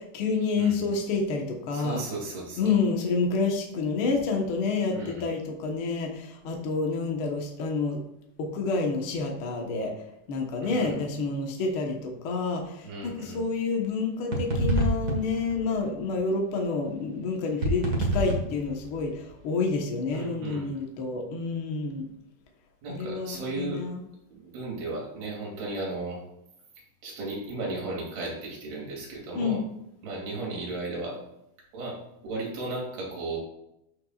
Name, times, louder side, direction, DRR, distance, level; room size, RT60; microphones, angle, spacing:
voice 1, 0.0-2.0 2.6-8.0 8.4-9.9 10.3-22.0 22.9-24.0 29.3-29.6, left 4 dB, 85° left, 1 dB, 1.1 m, -28 dB
voice 2, 1.7-2.7 4.9-5.3 10.6-10.9 12.8-13.4 20.1-20.7 22.8-23.8 24.3-26.2 27.0-29.6 30.0-31.2 31.7-32.0 32.2-33.4, right 2 dB, 85° right, -3 dB, 4.6 m, -35 dB
sound 1, 14.3-15.8 17.6-19.1, right 2 dB, 55° right, 1.0 m, -27 dB
13.0 x 6.1 x 2.4 m, 0.82 s
omnidirectional pair, 4.4 m